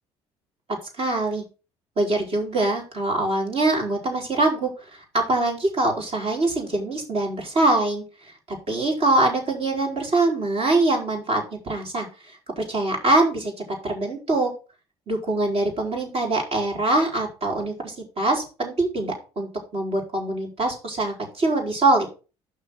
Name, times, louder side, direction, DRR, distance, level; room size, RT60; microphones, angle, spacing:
voice 1, 1.0-1.4 2.0-8.0 8.7-12.1 12.6-13.5 13.8-14.5 15.1-22.1, right 2 dB, 50° right, 0 dB, 4.7 m, -23 dB
6.5 x 5.8 x 6.3 m, 0.32 s
hypercardioid pair, 60°, 13 cm